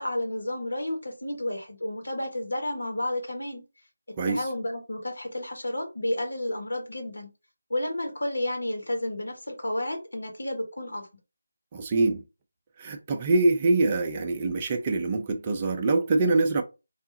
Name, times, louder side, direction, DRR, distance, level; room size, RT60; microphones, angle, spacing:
voice 1, 0.0-3.6 4.2-7.3 7.7-11.1, left 1 dB, 70° left, 1.3 m, -31 dB
voice 2, 11.7-12.2 12.8-16.6, right 3 dB, 25° right, 0.5 m, -24 dB
3.4 x 2.5 x 2.7 m
figure-of-eight pair, 160°, 0 cm